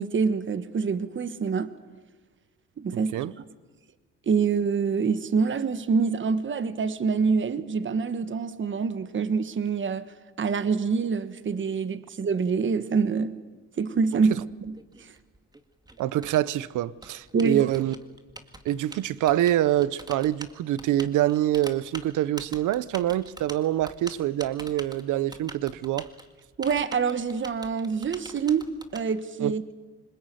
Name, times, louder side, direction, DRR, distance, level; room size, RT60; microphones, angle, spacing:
voice 1, 0.0-1.7 2.8-3.1 4.3-13.4 13.8-14.3 14.7-15.1 17.3-17.6 26.6-28.7 28.9-29.7, right 5 dB, 40° right, 1.3 m, -26 dB
voice 2, 2.9-3.3 16.0-17.9 18.6-26.1 29.4-29.5, right 13 dB, 80° right, 0.8 m, -25 dB
Typing, 14.3-29.0, right 2 dB, 15° right, 2.0 m, -44 dB
26.0 x 20.0 x 9.4 m
cardioid pair, 90°, 30 cm